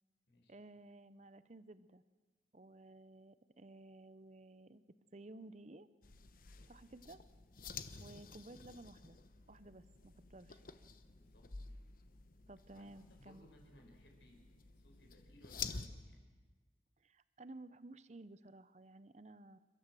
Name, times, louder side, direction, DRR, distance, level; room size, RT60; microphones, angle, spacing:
voice 1, 0.5-2.0 2.5-4.8 5.1-5.9 6.7-7.2 8.0-9.2 9.5-10.6 12.5-13.5 17.0-19.6, right 2 dB, 35° right, 15 dB, 0.7 m, -55 dB
sound 1, 6.0-15.9, left 5 dB, 45° left, 1.0 m, -51 dB
voice 2, 11.1-11.5 12.7-16.2, equal, 70° left, 1 dB, 5.3 m, -64 dB
29.0 x 13.0 x 7.7 m, 1.4 s
head